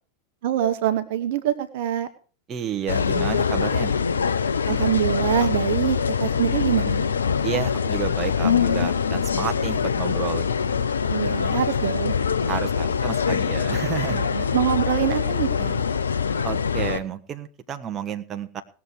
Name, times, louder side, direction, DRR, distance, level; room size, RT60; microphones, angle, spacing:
voice 1, 0.4-2.1 4.7-7.0 11.1-12.1 14.1-15.8, right 11 dB, 60° right, 10 dB, 1.1 m, -25 dB
voice 2, 2.5-4.0 7.4-10.8 12.5-14.6 16.4-18.6, right 8 dB, 30° right, 6 dB, 1.3 m, -31 dB
sound 1, 2.9-17.0, left 6 dB, 85° left, 0.8 m, -24 dB
18.5 x 7.3 x 4.7 m, 0.37 s
hypercardioid pair, 90°, 0 cm